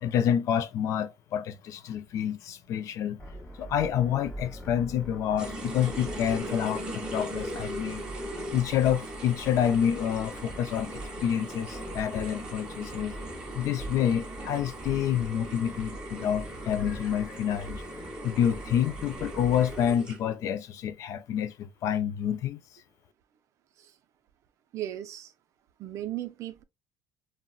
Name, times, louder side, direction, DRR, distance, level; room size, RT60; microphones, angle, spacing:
voice 1, 0.0-3.2 3.5-8.0 8.5-13.2 13.5-17.8 18.2-22.6, left 9 dB, 50° left, 0.3 m, -28 dB
sound 1, 3.2-19.9, equal, 15° left, 0.7 m, -43 dB
sound 2, 5.4-20.5, right 1 dB, 10° right, 1.0 m, -40 dB
voice 2, 24.7-25.3 25.8-26.6, right 13 dB, 50° right, 0.4 m, -36 dB
3.8 x 2.1 x 2.3 m
cardioid pair, 160°, 7 cm